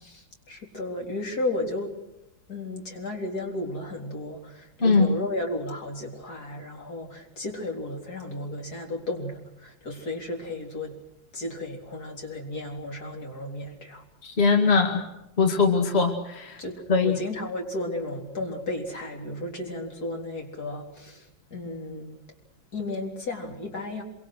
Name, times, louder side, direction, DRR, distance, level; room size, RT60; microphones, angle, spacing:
voice 1, 0.0-1.9 2.5-11.0 11.3-14.0 16.6-22.2 22.7-24.0, left 2 dB, 50° left, 1 dB, 4.4 m, -34 dB
voice 2, 4.8-5.1 14.2-15.1 15.4-16.6 16.9-17.2, left 4 dB, 30° left, 3 dB, 2.4 m, -21 dB
26.5 x 24.5 x 6.3 m, 0.87 s
omnidirectional pair, 2.1 m